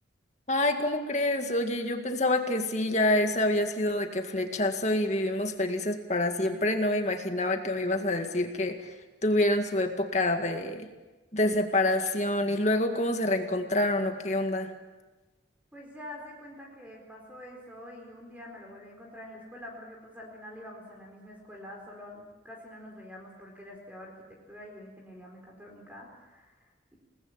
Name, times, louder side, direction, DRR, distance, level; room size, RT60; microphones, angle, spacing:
voice 1, 0.5-8.9 9.2-10.9 11.3-14.7, left 1 dB, 40° left, 5 dB, 2.1 m, -27 dB
voice 2, 15.7-27.0, left 1 dB, 10° right, -1 dB, 4.4 m, -46 dB
29.5 x 19.5 x 8.9 m, 1.2 s
head